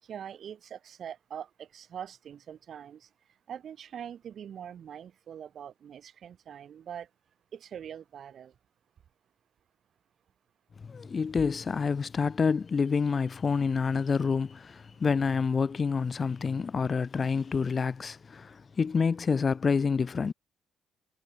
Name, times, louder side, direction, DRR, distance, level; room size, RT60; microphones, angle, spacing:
voice 1, 0.0-3.1 3.5-7.1 7.5-8.5, right 9 dB, 60° right, 6.3 m, -43 dB
voice 2, 10.8-20.3, left 5 dB, 40° left, 3.4 m, -28 dB
cardioid pair, 90°, 0 cm